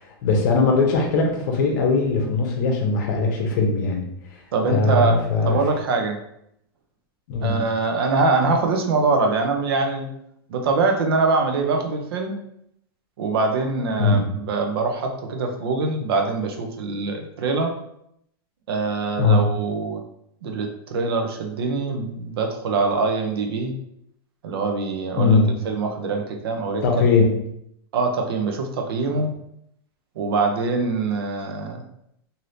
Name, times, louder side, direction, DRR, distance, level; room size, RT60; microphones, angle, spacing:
voice 1, 0.0-4.1 4.6-5.6 7.3-7.6 14.0-14.3 19.2-19.4 25.2-25.5 26.8-27.3, left 3 dB, 50° left, 2 dB, 0.8 m, -20 dB
voice 2, 4.5-5.2 5.4-6.2 7.4-10.1 10.5-12.4 13.2-17.7 18.7-20.0 20.4-23.7 24.4-25.4 25.6-27.0 27.9-29.3 30.2-31.8, right 3 dB, 75° right, 4 dB, 0.6 m, -23 dB
3.2 x 2.7 x 2.6 m, 0.74 s
supercardioid pair, 170°, 13 cm